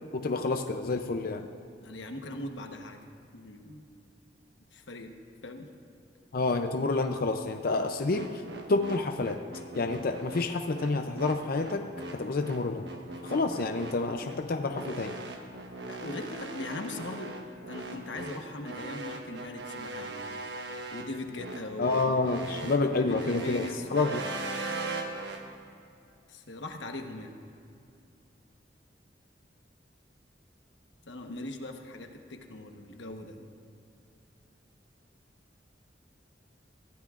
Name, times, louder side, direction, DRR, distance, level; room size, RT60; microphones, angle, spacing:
voice 1, 0.1-1.5 6.3-8.3 8.7-9.4 9.8-12.9 13.2-15.2 21.8-24.3, left 3 dB, 55° left, 6 dB, 0.5 m, -29 dB
voice 2, 1.8-3.0 3.3-3.8 4.7-5.2 5.4-5.7 15.9-17.3 17.7-20.4 20.9-24.0 26.3-27.3 31.1-33.5, left 2 dB, 90° left, 4 dB, 1.2 m, -40 dB
sound 1, 8.1-25.4, right 2 dB, 70° right, 1.2 m, -39 dB
23.5 x 15.0 x 2.5 m, 2.6 s
head